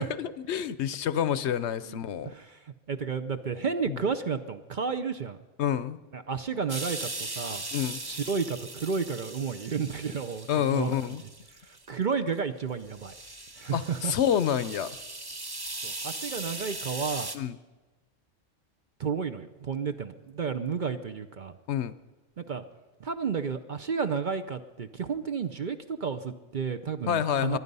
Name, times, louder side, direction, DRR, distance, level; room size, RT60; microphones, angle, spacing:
voice 1, 0.0-2.3 3.9-4.1 5.6-6.0 7.7-8.0 10.5-11.2 13.7-15.0 17.3-17.6 21.7-21.9 27.1-27.6, left 9 dB, 65° left, 15 dB, 0.9 m, -28 dB
voice 2, 2.2-5.4 6.1-7.6 8.0-11.0 11.7-13.1 13.6-14.1 15.8-17.3 19.0-21.5 22.4-22.6 23.0-27.6, right 6 dB, 50° right, 8 dB, 0.7 m, -32 dB
sound 1, 6.7-11.9 12.4-12.5 12.9-17.4, right 2 dB, 20° right, 0.9 m, -39 dB
24.0 x 9.6 x 5.4 m, 1.2 s
omnidirectional pair, 1.3 m